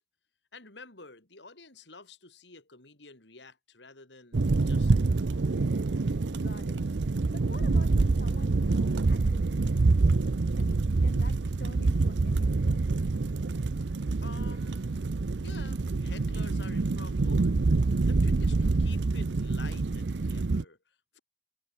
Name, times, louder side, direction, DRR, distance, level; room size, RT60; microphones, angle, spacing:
voice 1, 0.5-5.5 13.8-15.1 15.4-21.2, left 3 dB, 80° left, 4.4 m, -50 dB
sound 1, 4.3-20.6, right 3 dB, 80° right, 0.6 m, -26 dB
voice 2, 6.3-7.0 7.3-12.8, left 2 dB, 60° left, 2.4 m, -48 dB
head